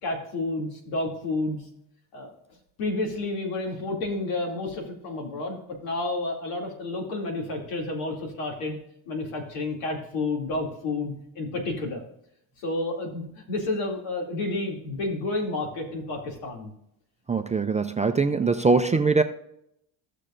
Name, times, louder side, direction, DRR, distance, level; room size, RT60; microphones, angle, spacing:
voice 1, 0.0-1.6 2.1-2.3 2.8-8.8 9.1-12.0 12.6-16.7, left 2 dB, 90° left, 1 dB, 2.6 m, -30 dB
voice 2, 17.3-19.2, right 4 dB, 15° right, 7 dB, 0.3 m, -22 dB
15.5 x 6.6 x 2.5 m, 0.75 s
cardioid pair, 105°, 49 cm